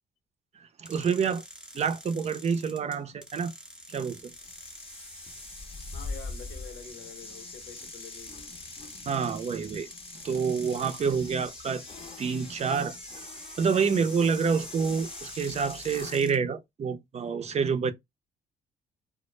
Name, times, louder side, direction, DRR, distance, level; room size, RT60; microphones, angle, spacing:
voice 1, 0.8-1.4 1.7-3.5 3.9-4.3 9.1-9.9 10.2-11.8 12.2-13.0 13.6-17.9, right 6 dB, 40° right, 0.5 m, -27 dB
sound 1, 0.9-16.4, equal, 5° right, 0.7 m, -47 dB
sound 2, 4.2-16.3, left 4 dB, 35° left, 0.6 m, -44 dB
voice 2, 5.9-8.5, left 6 dB, 80° left, 0.8 m, -47 dB
2.0 x 2.0 x 3.1 m
supercardioid pair, 75°, 16 cm